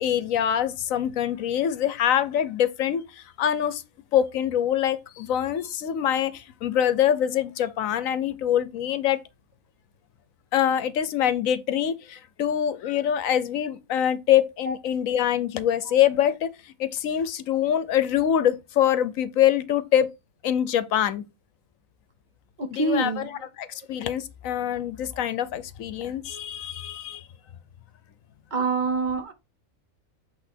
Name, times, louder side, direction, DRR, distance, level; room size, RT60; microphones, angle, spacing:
voice 1, 0.0-3.8 4.1-9.2 10.5-20.1 20.4-21.2 22.7-27.2, left 10 dB, 80° left, 1.1 m, -24 dB
voice 2, 22.6-23.3 28.5-29.3, right 3 dB, 40° right, 0.9 m, -26 dB
8.1 x 3.2 x 4.3 m
omnidirectional pair, 1.4 m